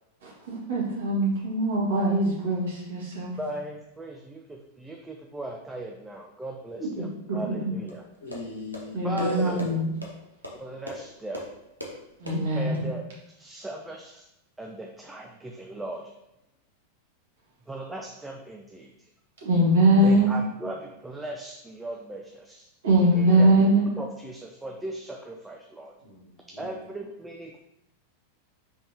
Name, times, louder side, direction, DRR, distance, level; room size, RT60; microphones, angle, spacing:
voice 1, 0.2-3.3 6.8-7.7 8.9-9.8 12.2-12.8 19.4-20.4 22.8-23.9, right 1 dB, 60° right, -4 dB, 1.7 m, -22 dB
voice 2, 3.4-8.0 9.0-9.6 10.6-11.4 12.5-13.0 13.3-14.3 14.6-16.1 17.7-18.9 20.0-22.7 23.1-23.5 23.9-25.9 26.6-27.6, right 1 dB, 10° right, 0 dB, 0.4 m, -38 dB
sound 1, 7.9-12.8, equal, 90° right, 0.8 m, -42 dB
voice 3, 8.2-9.8 19.9-20.3 23.5-23.7 26.0-26.8, left 2 dB, 65° left, -1 dB, 1.3 m, -37 dB
5.2 x 3.5 x 2.8 m, 0.87 s
figure-of-eight pair, 90°, 0 cm